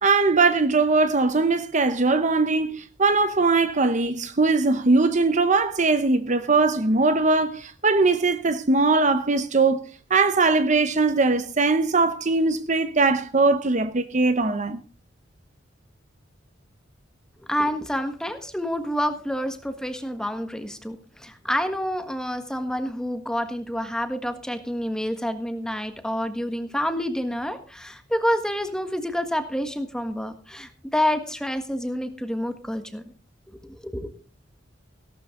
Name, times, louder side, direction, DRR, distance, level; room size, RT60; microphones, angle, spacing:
voice 1, 0.0-14.8, right 3 dB, 40° right, 0.9 m, -21 dB
voice 2, 17.5-33.1 33.5-34.1, equal, 5° left, 1.6 m, -28 dB
16.5 x 12.5 x 3.8 m
head